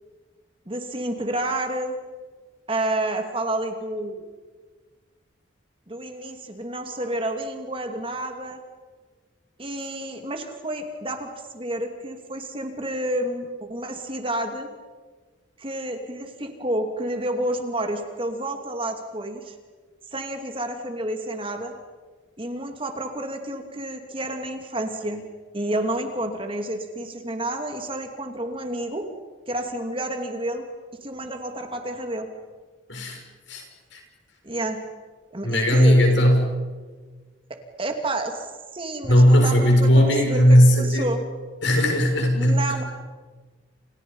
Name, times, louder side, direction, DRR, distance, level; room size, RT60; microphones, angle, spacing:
voice 1, 0.7-1.9 2.7-4.2 5.9-8.6 9.6-14.7 15.6-19.5 20.1-21.7 22.4-25.2 25.5-29.0 29.5-30.6 31.0-32.3 34.4-34.8 35.3-36.0 37.8-41.2 42.3-42.8, right 1 dB, 30° right, 5 dB, 2.8 m, -30 dB
voice 2, 35.4-36.5 39.1-41.1 41.6-42.6, equal, 75° left, 2 dB, 6.7 m, -17 dB
29.5 x 29.0 x 5.7 m, 1.4 s
head